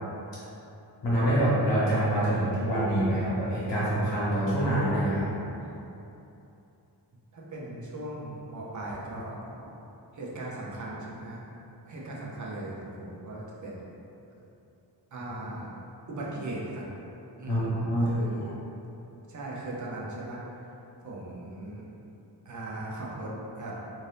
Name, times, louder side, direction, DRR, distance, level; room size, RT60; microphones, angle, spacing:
voice 1, 1.0-5.3 17.5-18.1, right 1 dB, 80° left, -9 dB, 1.1 m, -25 dB
voice 2, 7.3-9.4 10.1-11.4 11.8-13.8 15.1-15.7 16.1-16.9 17.4-18.5 19.3-20.7 21.0-21.9 22.5-23.9, right 1 dB, 45° right, -5 dB, 0.6 m, -38 dB
2.7 x 2.6 x 3.2 m, 2.8 s
wide cardioid pair, 170°, 42 cm